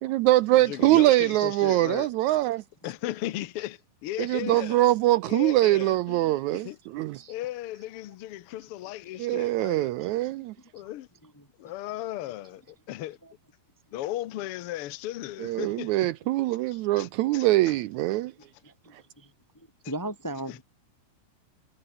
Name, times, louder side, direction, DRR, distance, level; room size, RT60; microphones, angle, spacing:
voice 1, 0.0-2.6 4.2-7.2 9.2-10.5 15.4-18.3, right 16 dB, 80° right, 1.7 m, -23 dB
voice 2, 0.5-2.1 2.8-4.9 5.3-6.8 7.3-9.9 10.7-11.1 11.6-13.2 13.9-16.1 16.7-17.8 20.5-20.6, left 14 dB, 85° left, 1.2 m, -36 dB
voice 3, 18.6-19.3 19.9-20.6, right 1 dB, 5° left, 1.6 m, -37 dB
omnidirectional pair, 3.9 m